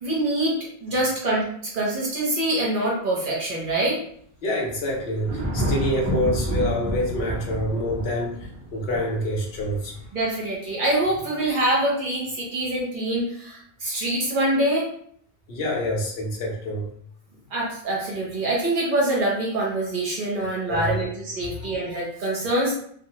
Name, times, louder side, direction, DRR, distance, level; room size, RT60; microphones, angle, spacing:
voice 1, 0.0-4.0 10.1-14.9 17.5-22.7, right 1 dB, 50° right, -4 dB, 0.9 m, -25 dB
voice 2, 4.4-10.0 15.5-16.9 20.7-21.0 21.4-21.7, left 1 dB, 65° left, -2 dB, 0.9 m, -27 dB
Thunder, 4.6-10.1, right 1 dB, 25° right, 0.4 m, -29 dB
2.4 x 2.1 x 2.8 m, 0.64 s
omnidirectional pair, 1.1 m